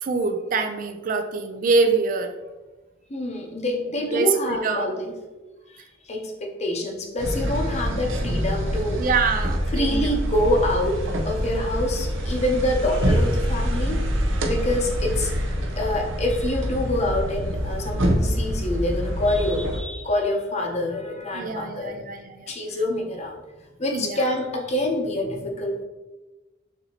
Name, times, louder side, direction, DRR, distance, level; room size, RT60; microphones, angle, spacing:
voice 1, 0.0-2.3 4.1-4.9 9.0-10.1 21.3-22.5 23.9-24.3, right 4 dB, 45° right, 7 dB, 0.3 m, -25 dB
voice 2, 3.1-5.1 5.7-5.8 6.1-9.0 9.7-14.0 14.4-15.3 15.8-21.9 22.5-23.3 23.8-25.8, left 1 dB, 35° left, 2 dB, 0.7 m, -26 dB
sound 1, 7.2-19.8, equal, 75° right, 0.7 m, -25 dB
6.7 x 2.7 x 2.9 m, 1.1 s
head